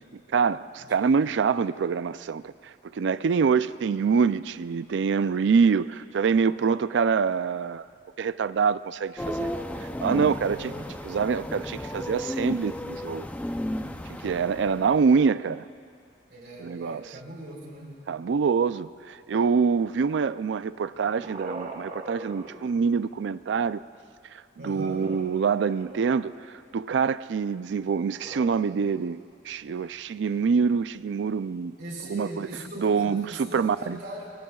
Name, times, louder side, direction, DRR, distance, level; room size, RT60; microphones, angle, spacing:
voice 1, 0.3-7.8 8.2-9.5 10.0-10.7 11.0-13.3 14.2-15.7 16.6-17.2 18.1-23.8 24.3-26.3 26.7-31.8 32.0-32.5 32.8-34.0, right 5 dB, 75° right, 15 dB, 0.4 m, -25 dB
sound 1, 9.2-15.3, left 1 dB, 10° left, 0.5 m, -34 dB
voice 2, 10.3-10.9 16.3-18.0 24.6-25.1 31.8-34.3, right 1 dB, 60° right, -1 dB, 3.8 m, -40 dB
sound 2, 20.7-23.4 24.9-26.6 28.0-28.5, right 2 dB, 35° right, 1.3 m, -42 dB
25.5 x 23.0 x 2.4 m, 2.3 s
head